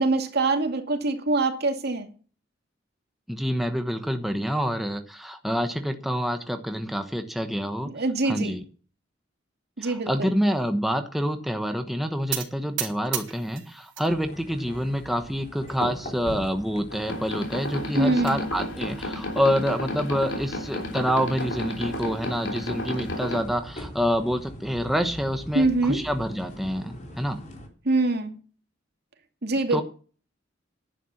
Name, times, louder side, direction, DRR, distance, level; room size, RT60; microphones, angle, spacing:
voice 1, 0.0-2.1 7.9-8.6 9.8-10.3 18.0-18.5 25.5-26.0 27.8-28.4 29.4-29.8, right 2 dB, 60° right, 5 dB, 2.4 m, -24 dB
voice 2, 3.3-7.9 8.2-8.6 9.8-27.4 29.7-29.8, equal, ahead, 5 dB, 1.1 m, -27 dB
sound 1, 12.3-14.1 14.5-15.1 15.7-15.8 16.1-16.2 16.5-16.6 17.7-18.4, right 11 dB, 80° right, 2.7 m, -34 dB
sound 2, 14.1-27.7, left 1 dB, 40° left, 3.7 m, -42 dB
sound 3, 16.9-23.4, left 1 dB, 75° left, 3.4 m, -32 dB
11.0 x 9.3 x 7.2 m, 0.39 s
head